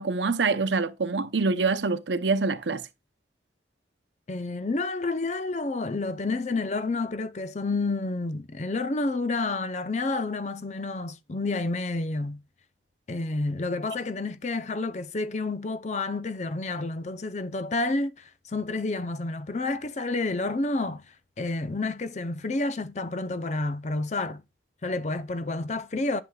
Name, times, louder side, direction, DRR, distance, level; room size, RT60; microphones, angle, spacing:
voice 1, 0.0-2.8, right 4 dB, 85° right, 0.8 m, -25 dB
voice 2, 4.3-12.4 13.1-21.0 21.4-24.4 24.8-26.2, left 3 dB, 40° left, 0.6 m, -29 dB
11.0 x 7.0 x 2.4 m
head